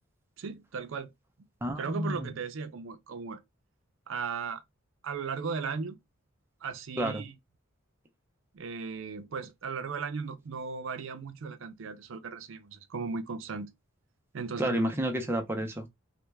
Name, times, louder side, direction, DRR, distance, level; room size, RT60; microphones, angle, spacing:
voice 1, 0.4-1.1 1.8-3.4 4.1-4.6 5.0-6.0 6.6-7.3 8.5-13.7 14.3-14.9, right 5 dB, 65° right, 0.5 m, -36 dB
voice 2, 1.6-2.3 7.0-7.2 14.6-15.9, right 1 dB, 10° right, 0.5 m, -30 dB
3.2 x 2.1 x 3.2 m
head